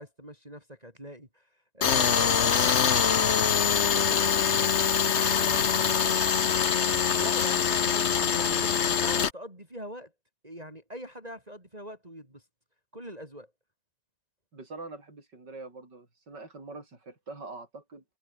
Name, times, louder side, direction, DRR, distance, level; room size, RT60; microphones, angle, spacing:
voice 1, 0.0-1.5 1.7-4.7 5.2-6.1 7.1-10.1 10.4-12.4 12.9-13.5, equal, 15° right, 6.3 m, -42 dB
Tools, 1.8-9.3, left 7 dB, 45° left, 1.0 m, -24 dB
voice 2, 14.5-18.0, right 3 dB, 50° right, 6.9 m, -44 dB
omnidirectional pair, 2.4 m